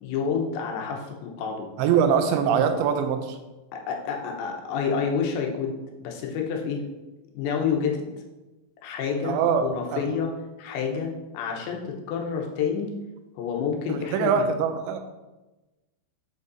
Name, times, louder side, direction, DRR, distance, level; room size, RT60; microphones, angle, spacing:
voice 1, 0.0-1.7 3.7-6.8 7.3-8.0 8.8-10.3 10.6-12.9 13.4-14.5, left 6 dB, 85° left, 1 dB, 3.3 m, -29 dB
voice 2, 1.8-3.4 9.2-10.0 13.9-15.0, right 7 dB, 85° right, 7 dB, 3.0 m, -23 dB
8.0 x 5.4 x 4.0 m, 1.1 s
omnidirectional pair, 5.1 m